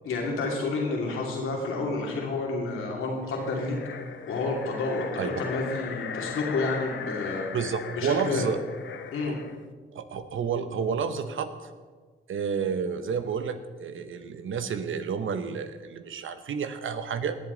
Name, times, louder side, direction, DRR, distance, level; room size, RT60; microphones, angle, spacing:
voice 1, 0.0-3.8 4.3-7.4 7.9-8.5 9.1-9.4, left 3 dB, 80° left, -1 dB, 2.7 m, -29 dB
sound 1, 3.2-9.7, left 6 dB, 65° left, 0.8 m, -38 dB
voice 2, 7.5-8.6 9.2-9.3 9.9-11.5 12.3-17.4, right 6 dB, 70° right, 10 dB, 1.0 m, -30 dB
19.0 x 7.6 x 4.0 m, 1.5 s
supercardioid pair, 50°, 21 cm